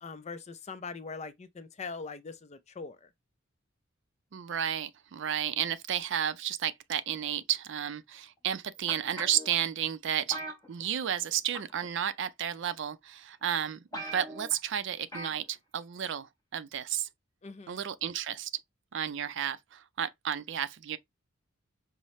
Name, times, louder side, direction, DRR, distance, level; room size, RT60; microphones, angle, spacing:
voice 1, 0.0-3.1 17.4-17.8, left 4 dB, 35° left, 0.4 m, -42 dB
voice 2, 4.3-10.4 10.7-17.1 17.7-18.5 18.9-21.0, right 9 dB, 60° right, 0.4 m, -32 dB
sound 1, 8.9-9.5 10.3-11.3 11.5-11.9 12.7-12.8 13.3-13.4 13.6-13.7 13.9-14.6 15.1-15.4 15.7-15.8, right 1 dB, 15° left, 0.9 m, -40 dB
5.5 x 2.1 x 3.0 m
head